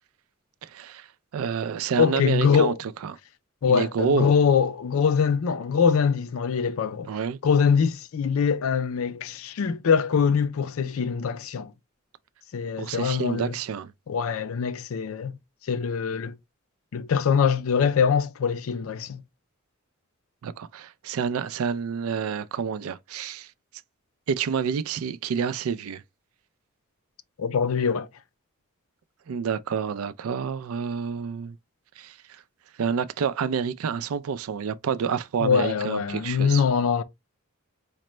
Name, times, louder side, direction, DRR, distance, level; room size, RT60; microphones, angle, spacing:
voice 1, 0.6-1.1 1.3-2.7 3.0-3.1 3.7-4.3 7.1-7.4 12.8-13.9 20.4-23.5 24.3-26.0 29.3-31.5 32.0-32.4 32.8-36.6, right 6 dB, 80° right, 0.4 m, -28 dB
voice 2, 2.0-2.8 3.6-7.1 7.4-11.7 12.5-13.5 14.1-15.3 15.7-16.3 16.9-19.2 27.4-28.1 35.4-37.0, left 6 dB, 75° left, 0.4 m, -23 dB
5.0 x 2.1 x 3.0 m
head